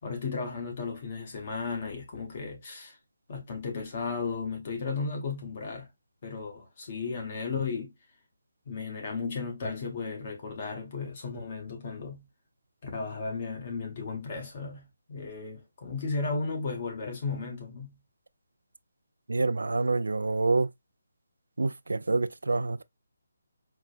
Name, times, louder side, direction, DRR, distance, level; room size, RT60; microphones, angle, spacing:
voice 1, 0.0-3.0 3.3-5.9 6.2-7.9 8.7-12.3 12.8-18.0, left 4 dB, 40° left, 0.9 m, -35 dB
voice 2, 19.3-20.7 21.6-22.8, right 3 dB, 90° right, 0.3 m, -27 dB
4.4 x 2.1 x 2.4 m
hypercardioid pair, 165°, 0 cm